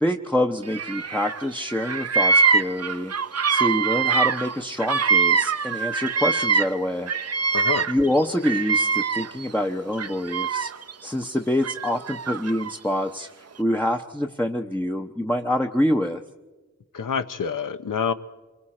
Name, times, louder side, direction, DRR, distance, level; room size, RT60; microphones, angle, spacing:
voice 1, 0.0-3.1 3.5-7.1 7.9-10.7 11.0-13.3 13.6-16.2, left 1 dB, 5° left, 3 dB, 0.8 m, -26 dB
Bird vocalization bird call bird song, 0.7-1.4 1.7-6.8 7.1-9.5 9.9-10.9 11.6-12.7, right 5 dB, 55° right, 0.6 m, -23 dB
voice 2, 7.5-7.9 16.9-18.1, left 6 dB, 80° left, 11 dB, 0.8 m, -27 dB
25.5 x 24.0 x 4.3 m, 1.3 s
wide cardioid pair, 40°, 31 cm